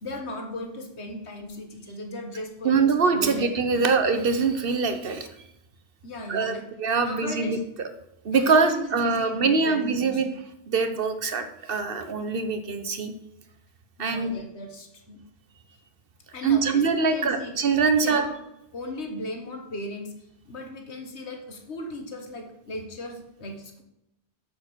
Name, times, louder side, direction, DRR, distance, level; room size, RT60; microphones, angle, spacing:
voice 1, 0.0-2.8 3.1-3.8 6.0-6.7 7.0-7.6 8.3-10.2 14.0-15.2 16.3-17.6 17.8-18.4 18.7-20.1 20.5-23.8, left 1 dB, 85° left, 3 dB, 1.7 m, -37 dB
voice 2, 2.6-5.3 6.3-7.6 8.2-10.3 10.7-13.1 14.0-14.3 16.4-18.2, right 4 dB, 60° right, 8 dB, 1.2 m, -23 dB
7.5 x 7.1 x 6.1 m, 0.86 s
omnidirectional pair, 1.1 m